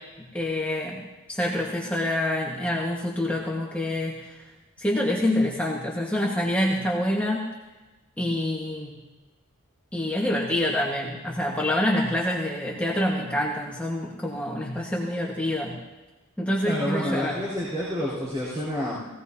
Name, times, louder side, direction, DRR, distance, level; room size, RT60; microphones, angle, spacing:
voice 1, 0.3-4.5 4.8-7.5 8.2-9.0 9.9-15.8 16.4-17.4, left 1 dB, 5° left, -4 dB, 1.5 m, -26 dB
voice 2, 16.6-19.0, equal, 25° right, -8 dB, 4.6 m, -29 dB
20.0 x 16.5 x 2.8 m, 1.2 s
head